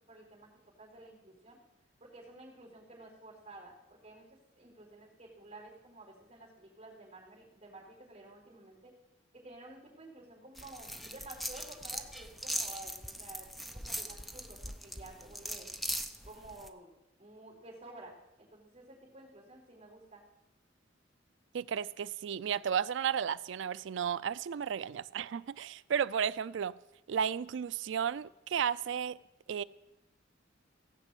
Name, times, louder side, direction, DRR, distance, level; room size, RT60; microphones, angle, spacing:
voice 1, 0.1-0.5 0.8-1.6 2.0-4.3 4.6-8.9 9.3-15.7 16.2-16.9 17.2-20.2, right 2 dB, 35° right, 4.3 m, -52 dB
sound 1, 10.6-16.7, equal, ahead, 0.6 m, -40 dB
voice 2, 21.5-26.8 27.1-29.2 29.5-29.6, right 8 dB, 70° right, 0.4 m, -33 dB
16.5 x 6.0 x 8.3 m
head